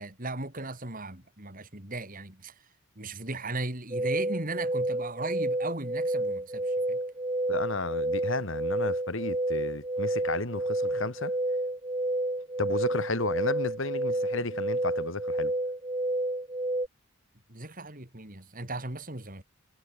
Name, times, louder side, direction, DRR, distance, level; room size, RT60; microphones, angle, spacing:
voice 1, 0.0-2.5 3.0-7.0 17.5-19.4, right 2 dB, 40° right, 3.8 m, -37 dB
sound 1, 3.9-16.9, right 1 dB, 20° right, 2.2 m, -30 dB
voice 2, 7.5-11.3 12.6-15.5, left 2 dB, 60° left, 3.1 m, -33 dB
head